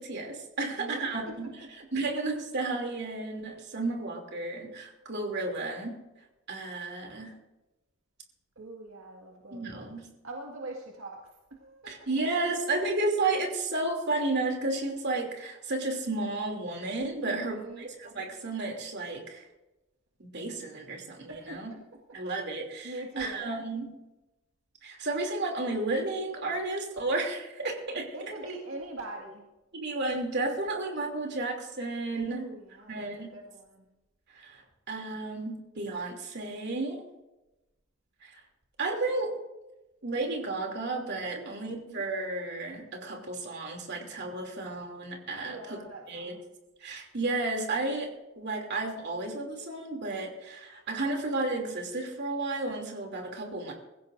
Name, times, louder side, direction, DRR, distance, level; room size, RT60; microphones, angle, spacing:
voice 1, 0.0-1.5 1.9-6.0 6.5-7.3 9.5-10.1 11.9-19.5 20.2-21.7 22.1-23.9 24.8-28.0 29.7-32.5 32.9-33.3 34.3-37.0 38.2-38.4 38.8-39.4 40.0-45.8 46.1-46.3 46.8-48.1 48.4-53.7, right 2 dB, 55° right, 1 dB, 2.9 m, -32 dB
voice 2, 0.6-1.3 1.6-1.7 8.6-10.0 10.2-12.0 17.2-17.9 21.3-21.8 22.8-23.4 28.1-29.5 32.1-33.9 41.3-42.0 45.4-46.4, right 2 dB, 80° right, 0 dB, 1.9 m, -43 dB
23.5 x 15.5 x 2.6 m, 1.0 s
head